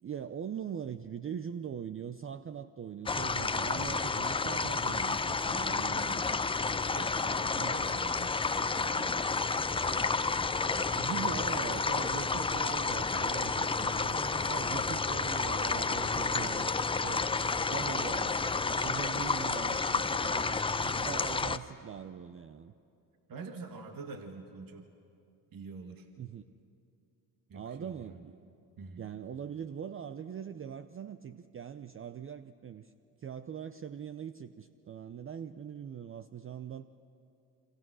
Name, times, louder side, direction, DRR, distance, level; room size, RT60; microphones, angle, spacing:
voice 1, 0.0-6.4 7.5-7.8 10.9-17.3 17.7-22.7 26.2-26.4 27.5-28.4 29.0-32.9 33.2-37.1, right 8 dB, 25° right, 12 dB, 0.6 m, -42 dB
sound 1, 3.1-21.6, left 4 dB, 10° left, 0.6 m, -31 dB
voice 2, 6.9-8.4 8.8-9.9 10.7-11.5 12.2-12.3 23.3-24.9 25.5-26.1 27.5-28.3 28.8-29.1, right 4 dB, 45° right, 5 dB, 2.1 m, -47 dB
28.0 x 25.5 x 6.3 m, 2.6 s
supercardioid pair, 85°, 47 cm